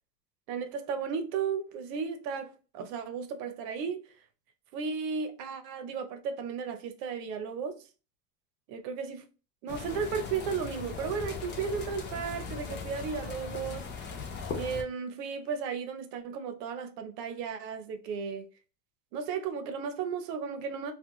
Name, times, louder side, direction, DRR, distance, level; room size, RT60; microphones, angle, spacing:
voice 1, 0.5-4.0 4.7-7.8 8.7-9.2 9.6-13.9 14.5-18.4 19.1-20.9, right 6 dB, 80° right, 0.8 m, -34 dB
sound 1, 9.7-14.8, left 5 dB, 25° left, 0.3 m, -39 dB
2.4 x 2.3 x 2.9 m
supercardioid pair, 120°, 49 cm